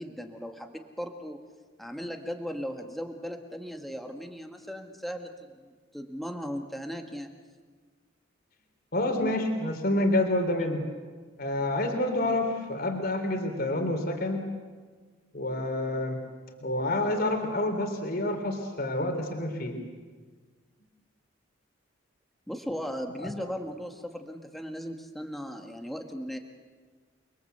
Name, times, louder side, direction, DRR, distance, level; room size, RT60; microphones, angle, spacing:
voice 1, 0.0-1.4 1.8-7.3 22.5-26.4, equal, ahead, 3 dB, 1.7 m, -37 dB
voice 2, 8.9-10.8 11.4-14.5 15.3-16.2 16.6-19.8, left 1 dB, 50° left, 4 dB, 3.3 m, -28 dB
29.5 x 22.5 x 8.1 m, 1.5 s
head